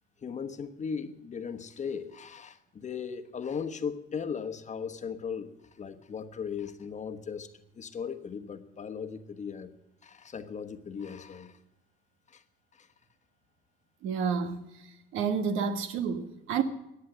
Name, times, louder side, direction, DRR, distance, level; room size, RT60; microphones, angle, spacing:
voice 1, 0.2-5.5 5.8-7.5 7.8-9.7 10.0-11.5 12.3-12.4 12.8-12.9, left 6 dB, 35° left, 1.2 m, -37 dB
voice 2, 14.0-14.7 15.1-16.6, right 6 dB, 75° right, 1.7 m, -29 dB
14.5 x 9.5 x 7.8 m
cardioid pair, 105°, 21 cm